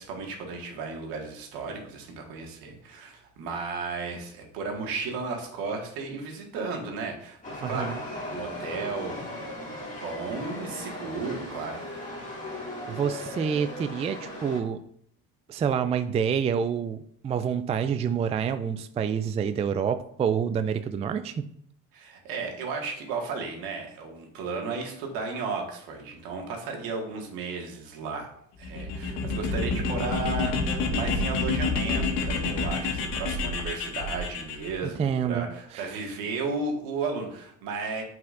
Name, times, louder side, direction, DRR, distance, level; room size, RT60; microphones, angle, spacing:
voice 1, 0.0-8.0 8.2-9.2 9.9-11.8 21.9-28.3 28.6-38.0, right 4 dB, 70° right, 1 dB, 1.9 m, -34 dB
Chatter / Subway metro underground, 7.4-14.6, left 1 dB, 20° left, 2.3 m, -37 dB
voice 2, 7.6-8.0 12.9-14.8 15.5-21.5 35.0-35.5 35.7-35.9, right 7 dB, 20° right, 11 dB, 0.3 m, -27 dB
sound 1, 28.6-34.7, left 3 dB, 75° left, 1.5 m, -28 dB
8.1 x 4.8 x 2.6 m, 0.68 s
supercardioid pair, 80°, 36 cm